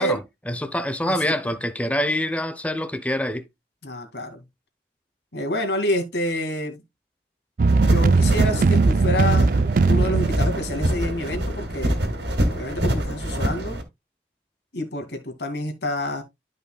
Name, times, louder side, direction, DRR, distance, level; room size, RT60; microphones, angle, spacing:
voice 1, 0.0-3.5, left 1 dB, 10° left, 0.7 m, -26 dB
voice 2, 1.0-1.3 3.8-4.4 5.3-6.8 7.8-12.0 12.5-13.8 14.7-16.2, left 1 dB, 80° left, 2.3 m, -28 dB
sound 1, 7.6-11.6, right 3 dB, 50° right, 0.4 m, -20 dB
sound 2, 7.7-13.8, equal, 80° right, 2.2 m, -25 dB
12.5 x 5.4 x 2.3 m
head